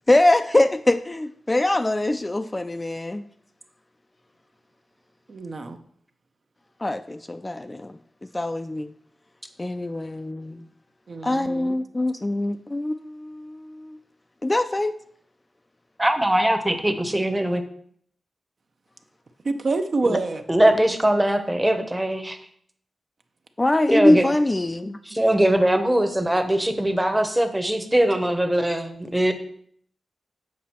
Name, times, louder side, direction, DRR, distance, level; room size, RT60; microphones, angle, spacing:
voice 1, 0.1-3.2 6.8-7.9 8.3-8.9 9.6-10.6 11.2-14.0 14.4-14.9 23.6-25.0, left 1 dB, 20° left, 9 dB, 0.3 m, -23 dB
voice 2, 5.3-5.8 11.1-11.8 19.4-20.4, right 3 dB, 50° right, 7 dB, 0.6 m, -27 dB
voice 3, 16.0-17.6 20.0-20.2 20.5-22.4 23.9-24.3 25.1-29.3, right 1 dB, 10° right, 8 dB, 0.8 m, -21 dB
7.4 x 5.0 x 4.3 m, 0.64 s
wide cardioid pair, 100°, 0 cm